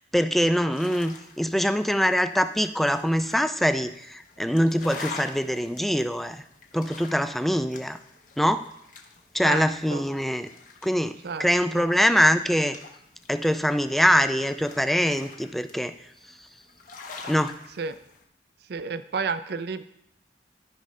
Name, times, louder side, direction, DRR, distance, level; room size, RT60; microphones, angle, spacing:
voice 1, 0.0-6.4 6.7-8.0 8.4-8.7 9.3-10.5 10.8-12.8 13.3-15.9 17.3-17.6, equal, ahead, 10 dB, 0.3 m, -23 dB
sound 1, 0.7-18.2, left 4 dB, 50° left, 1.0 m, -46 dB
voice 2, 9.4-10.0 11.2-11.5 11.8-11.9 17.8-18.0 18.7-19.8, right 5 dB, 60° right, 12 dB, 0.5 m, -31 dB
14.0 x 5.4 x 3.1 m, 0.76 s
head